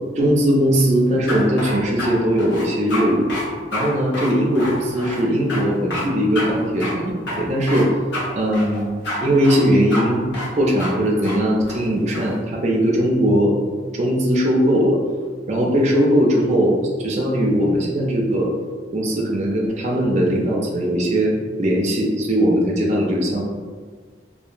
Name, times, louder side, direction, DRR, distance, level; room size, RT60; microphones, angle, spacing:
voice 1, 0.2-3.3 3.7-7.9 8.3-8.9 9.2-13.5 13.9-15.0 15.5-18.5 18.9-23.4, equal, 35° right, -2 dB, 0.4 m, -19 dB
sound 1, 1.3-2.1 2.4-3.0 3.3-3.4 3.7-3.9 4.1-5.2 5.5-5.6 5.9-6.0 6.3-6.5 6.8-6.9 7.3-7.8 8.1-8.3 8.5-9.2 9.4-9.6 9.9-10.0 10.3-10.5 10.8-10.9 11.2-11.4 11.7-12.3, left 1 dB, 70° left, 0.8 m, -28 dB
2.8 x 2.1 x 2.5 m, 1.6 s
head